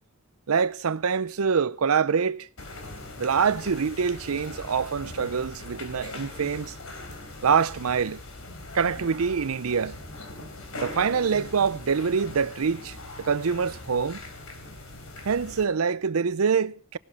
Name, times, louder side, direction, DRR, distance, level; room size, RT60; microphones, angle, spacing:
voice 1, 0.5-2.5 3.2-6.7 7.4-8.2 8.7-10.0 10.7-14.2 15.2-17.0, right 6 dB, 85° right, 0.6 m, -25 dB
sound 1, 2.6-15.6, left 2 dB, 85° left, 3.8 m, -41 dB
18.0 x 12.5 x 4.2 m
head